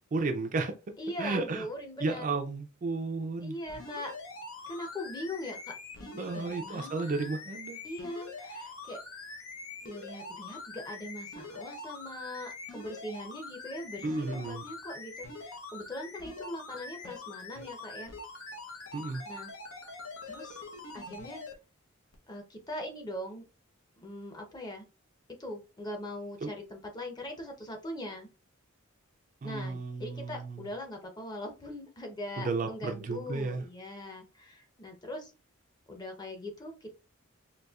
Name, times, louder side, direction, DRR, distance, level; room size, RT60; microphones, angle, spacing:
voice 1, 0.1-1.7 2.0-3.6 6.2-7.8 14.0-14.6 18.9-19.2 26.4-26.5 29.4-30.7 32.4-33.6, right 3 dB, 35° right, 0.3 m, -33 dB
voice 2, 1.0-2.3 3.4-4.1 4.7-7.3 7.8-9.0 9.8-18.1 19.2-19.5 20.3-20.6 20.9-21.4 22.3-23.5 24.0-24.9 25.4-28.3 29.4-35.3 35.9-36.9, left 1 dB, 20° left, 0.6 m, -41 dB
sound 1, 3.7-21.5 22.1-22.2, left 3 dB, 85° left, 0.8 m, -44 dB
4.0 x 2.7 x 2.3 m
head